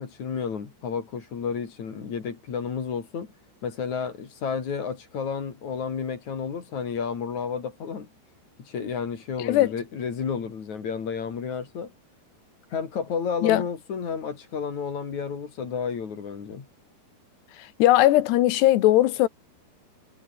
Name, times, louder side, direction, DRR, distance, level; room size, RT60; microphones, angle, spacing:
voice 1, 0.0-3.3 3.6-8.1 8.6-11.9 12.7-16.7, left 6 dB, 45° left, 4.4 m, -31 dB
voice 2, 9.4-9.7 13.4-13.6 17.8-19.3, left 15 dB, 85° left, 3.3 m, -19 dB
omnidirectional pair, 4.7 m